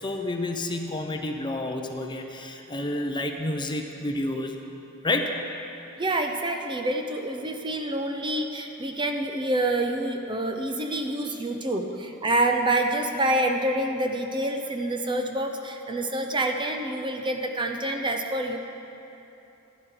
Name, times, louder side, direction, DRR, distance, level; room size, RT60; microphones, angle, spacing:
voice 1, 0.0-4.6 5.0-5.3, left 2 dB, 20° left, 4 dB, 0.7 m, -29 dB
voice 2, 6.0-18.6, right 1 dB, 25° right, 4 dB, 0.7 m, -27 dB
15.5 x 11.5 x 3.9 m, 2.9 s
head